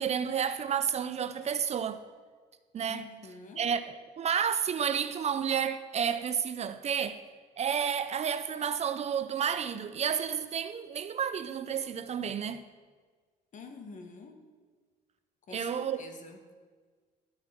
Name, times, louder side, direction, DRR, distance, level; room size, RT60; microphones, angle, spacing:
voice 1, 0.0-2.0 2.7-3.0 3.6-3.8 4.2-7.2 7.6-12.6 15.5-16.0, right 7 dB, 40° right, 0.6 m, -31 dB
voice 2, 2.9-3.7 13.5-14.4 15.5-16.4, left 4 dB, 50° left, 1.7 m, -47 dB
12.5 x 7.3 x 6.0 m
cardioid pair, 110°, 17 cm